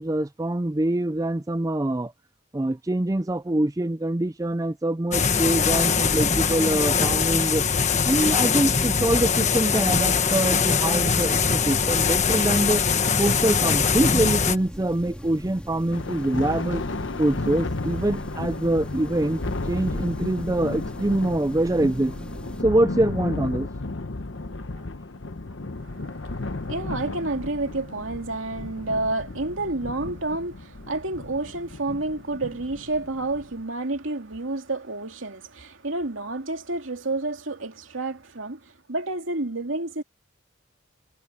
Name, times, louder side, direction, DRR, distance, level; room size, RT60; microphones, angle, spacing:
voice 1, 0.0-2.1 2.5-7.6 8.1-12.8 13.2-16.8 17.2-19.4 19.7-22.1 22.6-23.7, right 1 dB, 15° right, 0.4 m, -24 dB
sound 1, 5.1-14.6, left 6 dB, 35° left, 1.4 m, -22 dB
sound 2, 11.4-22.6, equal, 5° left, 2.3 m, -39 dB
Thunder, 15.9-33.6, left 2 dB, 70° left, 1.0 m, -34 dB
voice 2, 25.8-38.6 38.9-40.0, right 2 dB, 85° right, 2.5 m, -30 dB
head